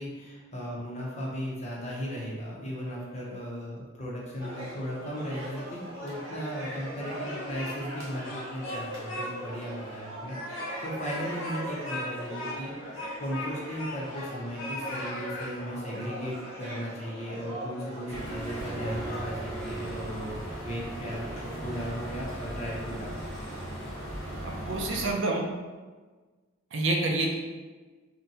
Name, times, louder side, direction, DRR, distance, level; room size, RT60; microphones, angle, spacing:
voice 1, 0.0-12.7 13.2-23.2, equal, 35° left, -4 dB, 0.6 m, -36 dB
sound 1, 4.4-19.6, right 1 dB, 85° right, 1.0 m, -40 dB
Speech, 7.0-7.9 8.2-9.3 9.6-9.7 10.2-14.3 14.6-15.5, left 1 dB, 70° left, 0.7 m, -38 dB
sound 2, 18.1-25.1, right 1 dB, 5° left, 0.9 m, -37 dB
voice 2, 24.4-25.5 26.7-27.4, right 2 dB, 65° right, 0 dB, 0.5 m, -28 dB
3.8 x 2.1 x 2.7 m, 1.3 s
head